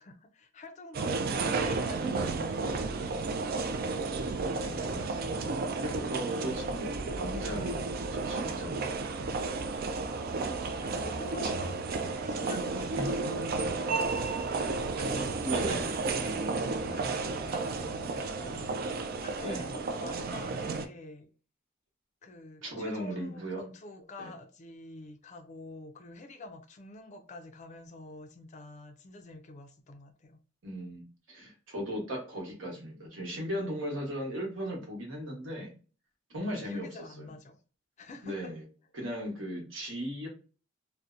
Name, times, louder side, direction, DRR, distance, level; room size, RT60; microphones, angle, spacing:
voice 1, 0.0-3.5 10.8-21.3 22.2-30.4 36.6-37.6 38.0-38.5, left 2 dB, 40° left, 0.4 m, -47 dB
sound 1, 0.9-20.9, right 3 dB, 50° right, 0.3 m, -32 dB
voice 2, 4.2-5.4 5.8-6.9 7.2-9.0 11.4-11.5 13.0-13.1 15.4-15.9 19.4-19.6 22.6-23.6 24.2-24.3 30.6-31.0 31.3-35.7 36.3-36.9 38.2-38.6 38.9-40.3, equal, 80° right, 1.1 m, -37 dB
sound 2, 6.5-12.0, left 1 dB, 10° right, 0.9 m, -51 dB
2.7 x 2.0 x 2.4 m
head